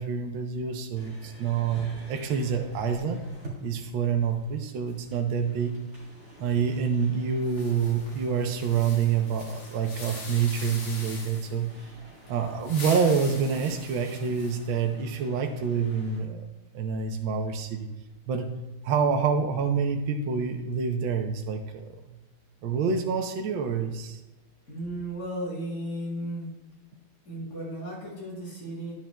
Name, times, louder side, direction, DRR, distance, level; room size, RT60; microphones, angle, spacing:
voice 1, 0.0-3.2 3.6-5.7 6.4-11.7 12.3-16.4 16.7-17.9 18.3-18.5 18.8-22.0 22.6-24.2, right 6 dB, 70° right, 4 dB, 1.5 m, -27 dB
sound 1, 0.9-16.2, right 1 dB, 30° right, 3.1 m, -48 dB
sound 2, 7.4-11.6 12.5-14.8, left 2 dB, 75° left, 2.8 m, -42 dB
voice 2, 24.6-26.5 27.2-28.9, right 1 dB, 40° left, -5 dB, 3.9 m, -35 dB
10.5 x 10.0 x 2.2 m, 1.1 s
omnidirectional pair, 2.4 m